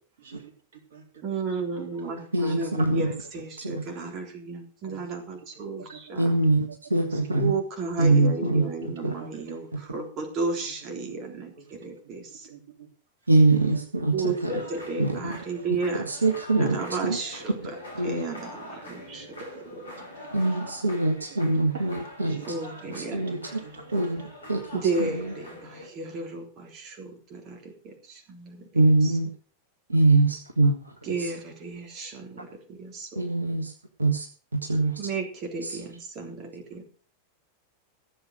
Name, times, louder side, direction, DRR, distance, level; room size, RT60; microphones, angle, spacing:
voice 1, 0.2-0.5 0.9-1.0 2.0-3.4 4.8-5.1 5.8-6.4 6.7-7.2 8.5-9.6 11.1-11.2 11.6-12.1 12.4-12.9 13.7-14.2 14.6-15.7 18.5-19.7 20.2-24.3 24.7-24.8, right 5 dB, 60° right, 4 dB, 3.6 m, -49 dB
voice 2, 1.2-6.4 7.3-12.5 14.1-16.1 16.6-20.1 22.4-23.4 24.7-28.7 29.0-29.1 31.0-33.3 35.0-36.8, right 4 dB, 35° right, 3 dB, 3.6 m, -33 dB
voice 3, 2.3-3.1 3.6-3.8 6.2-7.5 8.0-8.7 9.0-9.1 9.7-9.8 13.3-14.5 15.0-15.3 16.1-17.2 18.0-18.2 20.3-22.4 23.1-23.6 23.9-24.2 24.5-24.8 28.7-29.3 29.9-30.9 31.2-31.3 33.2-33.7 34.0-34.3 34.5-35.0 35.6-35.8, right 2 dB, 80° right, 3 dB, 1.7 m, -23 dB
sound 1, 14.4-25.9, left 1 dB, 75° left, 6.5 m, -44 dB
15.0 x 8.0 x 6.5 m, 0.42 s
figure-of-eight pair, 90°, 0 cm